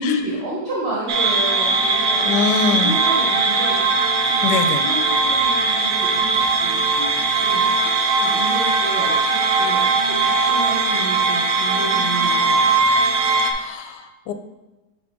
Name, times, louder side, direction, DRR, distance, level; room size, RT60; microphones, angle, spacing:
voice 1, 0.0-2.3 2.7-4.0 4.3-9.1 9.5-12.7, right 1 dB, 40° right, -8 dB, 1.3 m, -30 dB
sound 1, 1.1-13.5, right 3 dB, 65° right, 0.8 m, -19 dB
voice 2, 2.2-2.9 4.4-4.8 13.5-14.3, left 5 dB, 75° left, 7 dB, 1.1 m, -23 dB
7.4 x 3.7 x 3.6 m, 1.1 s
omnidirectional pair, 2.0 m